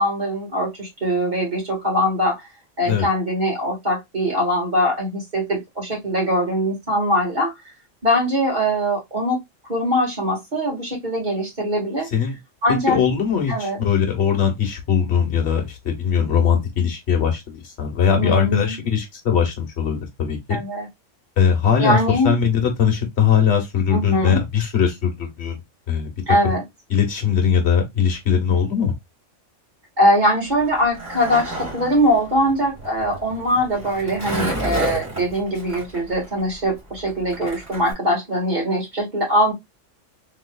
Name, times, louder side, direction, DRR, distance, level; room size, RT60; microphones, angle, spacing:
voice 1, 0.0-2.4 2.8-7.5 8.0-9.4 9.7-12.1 12.6-13.0 13.5-13.8 18.1-18.8 20.5-20.9 21.8-22.4 23.9-24.4 26.2-26.6 30.0-39.5, equal, 35° right, 1.9 m, -22 dB
voice 2, 12.7-20.6 21.4-25.6 25.9-26.6 26.9-28.9, left 7 dB, 60° left, 1.3 m, -20 dB
Skateboard, 30.5-37.9, right 1 dB, 10° right, 1.9 m, -31 dB
3.4 x 3.1 x 2.2 m
omnidirectional pair, 1.3 m